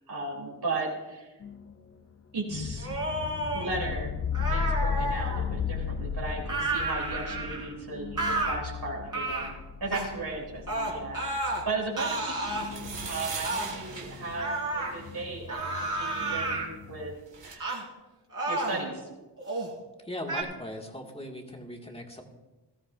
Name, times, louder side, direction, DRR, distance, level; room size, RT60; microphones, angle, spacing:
voice 1, 0.1-1.3 2.3-3.0 3.5-4.1 4.5-9.4 9.8-17.1 17.4-17.8 18.5-19.1, right 3 dB, 65° right, -3 dB, 3.3 m, -36 dB
sound 1, 1.4-1.7 2.5-17.1, left 6 dB, 35° left, 0.7 m, -36 dB
sound 2, 2.8-3.7 4.3-5.4 6.5-7.7 8.2-8.6 9.1-9.5 9.9-10.1 10.7-11.6 12.0-12.7 13.4-13.7 14.4-14.9 15.5-16.7 17.6-17.8 18.3-18.8 19.4-19.7 20.3-20.4, right 2 dB, 50° right, 3.6 m, -31 dB
sound 3, 12.6-15.2 16.9-17.0 17.2-17.6, right 4 dB, 85° right, 1.8 m, -39 dB
voice 2, 20.1-22.2, left 1 dB, 15° left, 1 dB, 2.0 m, -38 dB
19.0 x 13.5 x 2.6 m, 1.1 s
wide cardioid pair, 70°, 42 cm